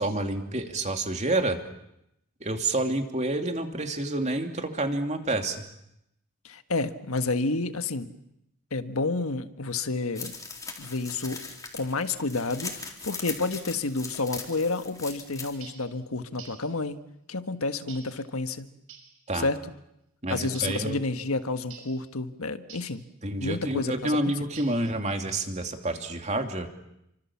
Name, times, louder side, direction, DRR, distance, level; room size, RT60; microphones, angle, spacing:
voice 1, 0.0-1.6 2.4-5.6 19.3-19.5 20.2-21.0 23.2-26.7, right 2 dB, 30° right, 5 dB, 2.7 m, -28 dB
voice 2, 6.4-8.1 8.7-10.3 10.8-11.4 11.7-17.0 17.3-18.7 19.3-19.6 20.3-23.0 23.4-24.4, left 3 dB, 85° left, 9 dB, 1.6 m, -30 dB
sound 1, 10.2-15.5, left 4 dB, 15° left, 3.8 m, -40 dB
sound 2, 15.6-15.9 16.4-16.7 17.9-18.2 18.9-19.2 20.5-20.8 21.7-22.0 22.7-23.0 24.6-25.0, right 7 dB, 65° right, 5.9 m, -47 dB
29.5 x 25.0 x 7.3 m, 0.81 s
head